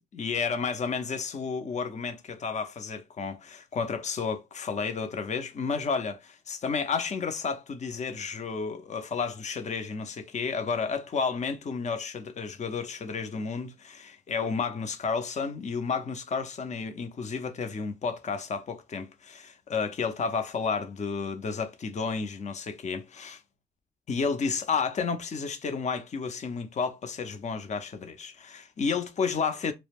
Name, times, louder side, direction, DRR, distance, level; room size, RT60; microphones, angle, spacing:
voice 1, 0.1-23.4 24.1-29.7, left 5 dB, 40° left, 0.5 m, -31 dB
2.2 x 2.0 x 3.4 m
supercardioid pair, 50°, 18 cm